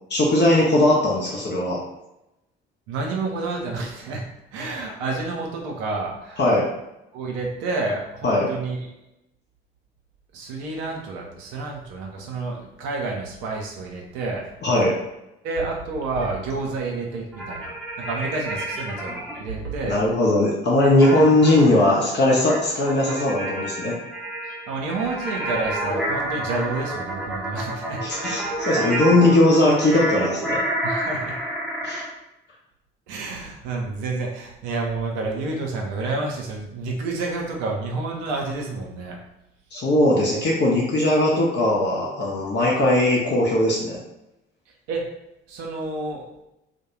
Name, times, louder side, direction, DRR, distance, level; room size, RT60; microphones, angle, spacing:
voice 1, 0.1-1.8 6.4-6.7 8.2-8.5 14.6-14.9 19.8-23.9 28.0-30.6 31.8-32.0 39.7-44.0, left 1 dB, 40° left, -4 dB, 0.6 m, -19 dB
voice 2, 2.9-4.2 4.5-6.5 7.1-8.8 10.3-14.5 15.4-20.0 21.1-21.2 24.5-28.3 30.8-31.4 33.1-39.2 44.9-45.0 45.5-46.2, right 3 dB, 65° right, 0 dB, 0.6 m, -29 dB
sound 1, 17.3-19.4 21.0-32.1, right 1 dB, ahead, 0.7 m, -29 dB
2.2 x 2.1 x 3.0 m, 0.90 s
figure-of-eight pair, 45°, 29 cm